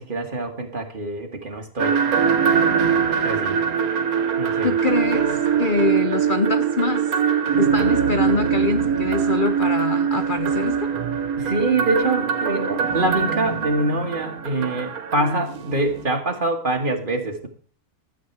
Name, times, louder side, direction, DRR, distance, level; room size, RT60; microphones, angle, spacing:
voice 1, 0.0-2.0 3.2-3.6 4.4-4.8 11.4-17.5, right 2 dB, 35° right, 4 dB, 1.8 m, -25 dB
sound 1, 1.8-16.0, right 7 dB, 80° right, 1.5 m, -22 dB
voice 2, 4.6-7.1 7.5-10.9, left 4 dB, 50° left, 9 dB, 0.6 m, -25 dB
12.5 x 7.8 x 4.5 m, 0.44 s
omnidirectional pair, 1.5 m